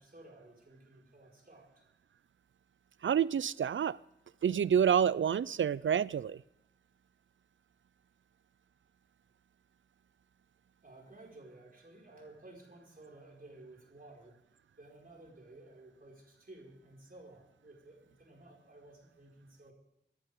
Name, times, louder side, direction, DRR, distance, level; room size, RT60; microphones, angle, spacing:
voice 1, 0.0-1.8 10.8-14.3 14.8-19.7, right 2 dB, 50° right, -2 dB, 5.1 m, -55 dB
voice 2, 3.0-4.0 4.4-6.4, right 8 dB, 90° right, 20 dB, 0.4 m, -28 dB
19.5 x 14.5 x 3.6 m, 0.85 s
wide cardioid pair, 80°, 19 cm